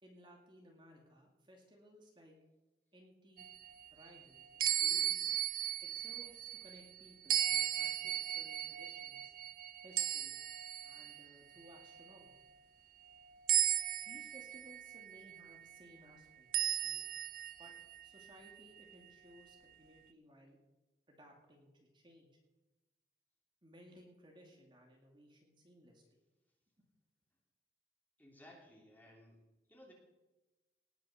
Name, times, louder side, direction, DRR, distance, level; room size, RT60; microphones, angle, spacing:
voice 1, 0.0-2.4 2.9-3.5 3.9-5.2 5.8-9.3 9.8-10.4 10.8-12.3 14.0-17.0 17.6-17.7 18.0-20.6 21.1-22.4 23.6-26.0, equal, 25° right, 0 dB, 2.3 m, -60 dB
sound 1, 3.4-6.8 7.3-11.2 11.7-12.1 13.5-15.6 16.5-18.5, right 12 dB, 50° right, 0.4 m, -36 dB
voice 2, 28.2-29.4 29.7-29.9, left 1 dB, 10° left, -2 dB, 3.0 m, -58 dB
19.0 x 6.8 x 6.4 m, 1.1 s
head